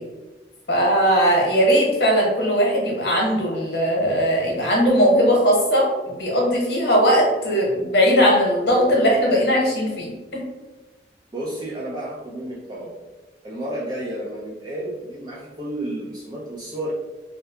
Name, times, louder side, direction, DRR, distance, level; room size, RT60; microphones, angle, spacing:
voice 1, 0.7-10.4, equal, 65° left, -2 dB, 0.9 m, -19 dB
voice 2, 11.3-12.9 13.4-16.9, right 1 dB, 20° right, -5 dB, 0.3 m, -31 dB
2.7 x 2.2 x 3.4 m, 1.2 s
head